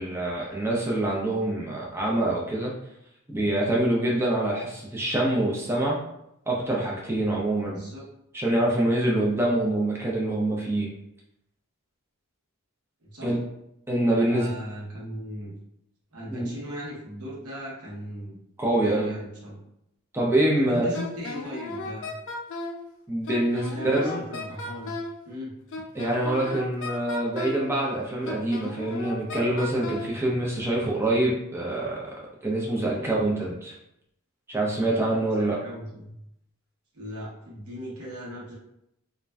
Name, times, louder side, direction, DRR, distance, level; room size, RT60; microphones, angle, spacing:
voice 1, 0.0-2.7 3.3-6.0 6.5-7.8 8.3-10.9 13.2-13.4 13.9-14.5 16.3-16.5 18.6-19.1 20.1-20.9 23.1-24.2 25.9-32.1 32.4-33.7 34.5-35.6, right 1 dB, 10° right, -4 dB, 0.5 m, -25 dB
voice 2, 7.7-8.0 9.1-9.3 13.0-13.4 14.3-15.5 16.1-18.4 18.6-19.6 20.6-22.1 23.5-25.0 25.2-25.5 32.8-33.1 35.3-36.1 36.9-38.5, equal, 85° right, -4 dB, 1.0 m, -38 dB
Wind instrument woodwind instrument, 20.9-22.8 23.3-25.2 25.7-27.7 28.3-30.1, left 2 dB, 55° left, 0.4 m, -35 dB
2.4 x 2.1 x 3.3 m, 0.79 s
head